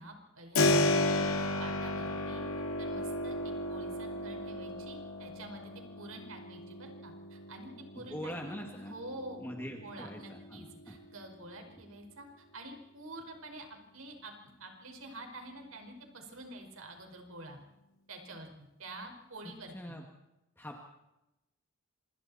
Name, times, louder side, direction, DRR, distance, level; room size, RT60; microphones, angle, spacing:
voice 1, 0.0-2.4 2.8-8.5 8.8-9.5 9.8-14.3 14.6-17.6 18.1-20.0, right 1 dB, 80° right, 4 dB, 5.1 m, -48 dB
Keyboard (musical), 0.6-11.2, left 2 dB, 85° left, 2.2 m, -34 dB
voice 2, 8.0-8.9 9.4-11.0 19.4-20.0 20.6-20.8, equal, 10° left, 1 dB, 2.0 m, -43 dB
27.0 x 26.5 x 4.3 m, 0.93 s
head